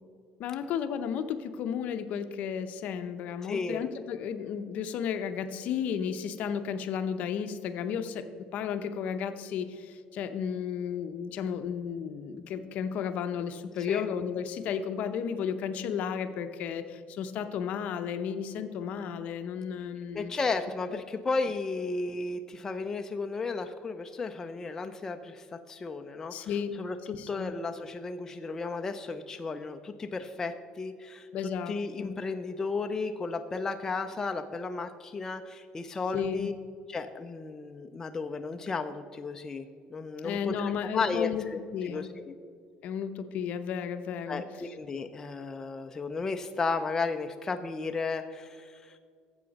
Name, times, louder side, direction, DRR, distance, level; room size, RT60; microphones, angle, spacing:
voice 1, 0.4-20.3 20.9-21.0 26.3-26.8 27.1-27.5 31.3-32.1 36.1-36.5 40.2-41.4 41.7-42.1 42.8-44.4, left 7 dB, 55° left, 9 dB, 0.7 m, -33 dB
voice 2, 3.4-3.8 13.9-14.1 20.1-26.5 26.8-27.0 27.3-31.3 31.7-36.5 36.9-39.7 39.9-41.3 41.8-42.3 44.3-49.0, left 4 dB, 20° left, 6 dB, 0.4 m, -34 dB
13.0 x 7.8 x 4.0 m, 2.1 s
cardioid pair, 145°, 3 cm